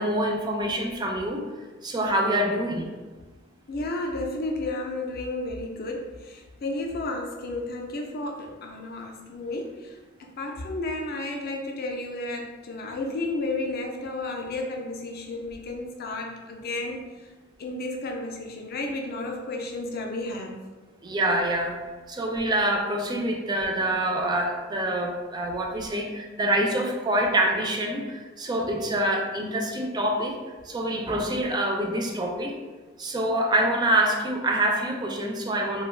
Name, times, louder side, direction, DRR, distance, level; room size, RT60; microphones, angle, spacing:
voice 1, 0.0-1.5 1.8-2.9 21.0-21.8 22.1-30.3 30.6-32.6 33.0-35.8, right 1 dB, 20° right, 1 dB, 0.3 m, -26 dB
voice 2, 3.7-17.0 17.6-20.6, left 2 dB, 50° left, 2 dB, 0.4 m, -32 dB
2.4 x 2.2 x 3.1 m, 1.3 s
head